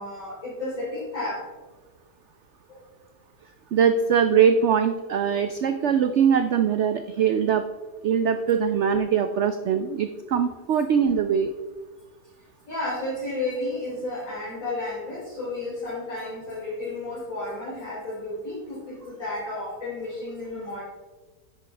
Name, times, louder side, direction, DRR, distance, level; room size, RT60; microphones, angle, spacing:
voice 1, 0.0-1.4 2.7-2.8 12.7-20.8, left 2 dB, 50° left, -9 dB, 3.9 m, -32 dB
voice 2, 3.7-7.7 8.0-11.5, right 7 dB, 90° right, 9 dB, 0.6 m, -22 dB
10.5 x 9.2 x 3.3 m, 1.3 s
omnidirectional pair, 1.8 m